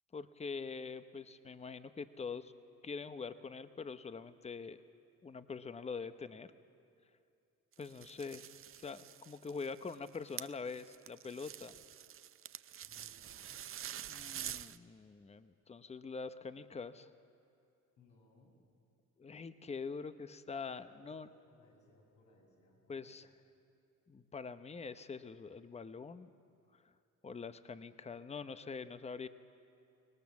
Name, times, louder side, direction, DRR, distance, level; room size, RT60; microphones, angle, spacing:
voice 1, 0.1-2.5 2.8-4.8 5.2-6.5 7.8-8.4 8.8-11.7 14.1-17.1 19.2-21.3 22.9-23.3 24.1-26.3 27.2-29.3, left 5 dB, 20° left, 12 dB, 0.7 m, -44 dB
sound 1, 7.7-14.8, right 10 dB, 45° right, 0.5 m, -47 dB
voice 2, 12.9-13.7 18.0-18.6 20.9-23.2, left 2 dB, 80° left, -2 dB, 6.5 m, -66 dB
24.5 x 18.5 x 7.1 m, 2.5 s
cardioid pair, 90°, 30 cm